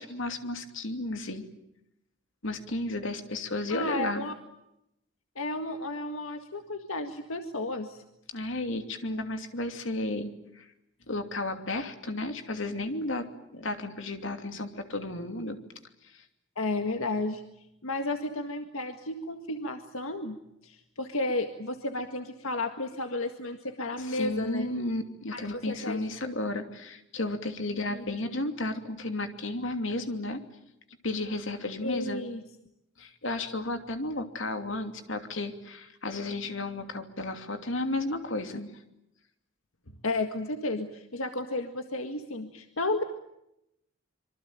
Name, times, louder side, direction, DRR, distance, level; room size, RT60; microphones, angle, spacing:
voice 1, 0.0-1.5 2.4-4.2 8.3-10.7 11.1-13.3 13.5-15.6 16.0-16.2 24.0-30.4 31.0-32.3 33.0-38.7, left 2 dB, 70° left, 6 dB, 2.8 m, -33 dB
voice 2, 3.7-4.3 5.4-8.0 16.6-17.4 17.8-20.4 20.6-24.7 25.3-26.0 27.9-28.0 31.8-32.4 40.0-43.0, left 2 dB, 85° left, 6 dB, 1.9 m, -32 dB
26.0 x 24.0 x 9.0 m, 0.83 s
head